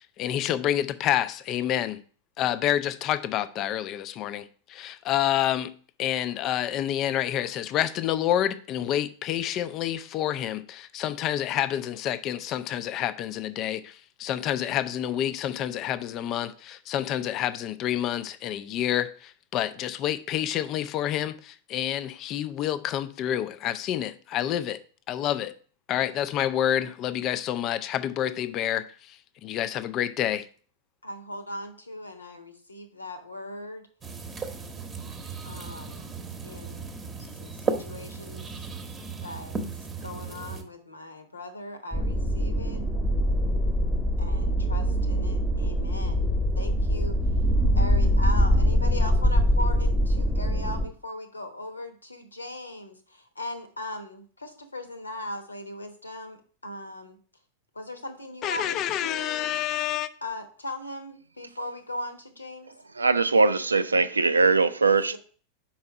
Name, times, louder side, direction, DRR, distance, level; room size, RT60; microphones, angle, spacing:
voice 1, 0.0-2.0 2.4-5.7 6.0-24.8 25.1-25.5 25.9-30.5 58.4-60.1, left 11 dB, 35° left, 0.4 m, -28 dB
voice 2, 31.0-33.9 35.4-36.1 36.4-36.9 37.4-38.5 39.2-39.6 40.0-42.8 43.5-43.6 44.2-47.1 47.7-56.4 56.6-57.2 57.7-59.5 60.2-62.7 64.9-65.2, left 1 dB, 80° left, 1.0 m, -38 dB
sound 1, 34.0-40.6, right 5 dB, 20° right, 0.9 m, -35 dB
sound 2, 41.9-50.9, equal, 10° left, 0.9 m, -23 dB
voice 3, 63.0-65.2, right 4 dB, 80° right, 0.4 m, -21 dB
5.6 x 4.3 x 5.5 m
figure-of-eight pair, 90°, 0 cm